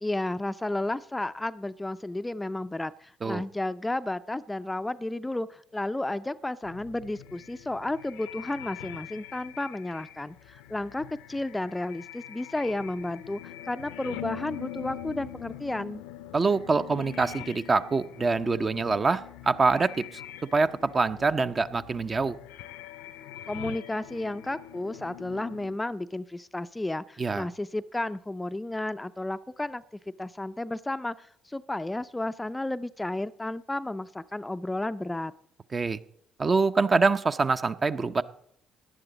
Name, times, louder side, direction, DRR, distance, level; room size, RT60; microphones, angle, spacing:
voice 1, 0.0-16.0 23.5-29.8 30.2-35.3, left 2 dB, 15° left, 13 dB, 0.4 m, -32 dB
sound 1, 6.6-25.7, left 13 dB, 75° left, 0.6 m, -44 dB
voice 2, 16.3-20.2 20.5-22.3 27.2-27.5 35.7-36.0 36.4-38.2, right 4 dB, 35° right, 11 dB, 0.6 m, -25 dB
17.5 x 10.0 x 4.0 m, 0.69 s
hypercardioid pair, 50°, 0 cm